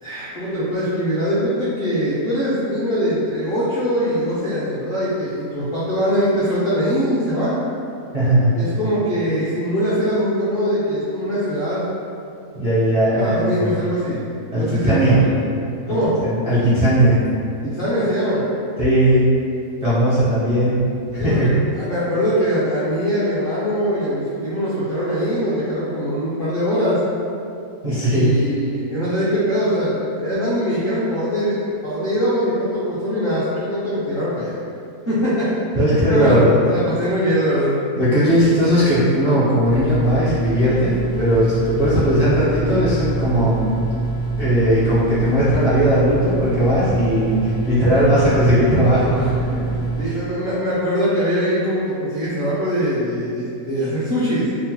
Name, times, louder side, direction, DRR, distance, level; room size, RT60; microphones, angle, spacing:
voice 1, 0.0-7.6 8.6-11.8 13.2-14.2 14.5-15.1 15.9-16.2 17.6-18.4 21.2-27.0 28.0-34.5 35.1-35.5 35.7-35.8 36.1-36.4 36.7-37.7 50.0-54.5, equal, 55° left, -11 dB, 0.6 m, -22 dB
voice 2, 8.1-8.6 12.5-13.8 14.5-15.3 15.9-16.0 16.2-17.2 18.8-19.4 19.8-20.9 21.1-21.5 27.8-28.5 35.7-36.6 38.0-43.8 44.4-49.6 50.0-50.1, equal, 40° right, -13 dB, 0.5 m, -18 dB
sound 1, 39.6-50.0, right 3 dB, 80° right, 1.1 m, -25 dB
2.9 x 2.0 x 2.9 m, 2.5 s
omnidirectional pair, 1.6 m